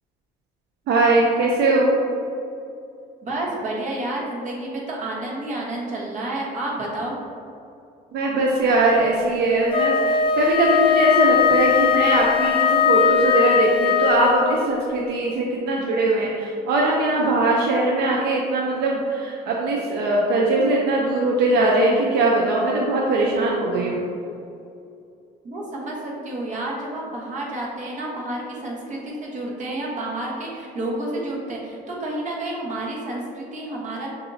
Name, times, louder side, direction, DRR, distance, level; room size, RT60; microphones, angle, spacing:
voice 1, 0.9-1.9 8.1-24.1, right 2 dB, 80° right, -3 dB, 0.6 m, -20 dB
voice 2, 3.2-7.2 25.4-34.1, right 1 dB, 45° right, -3 dB, 1.1 m, -30 dB
Wind instrument woodwind instrument, 9.7-14.6, left 8 dB, 30° left, 0.5 m, -19 dB
6.6 x 2.7 x 2.7 m, 2.6 s
cardioid pair, 110°, 17 cm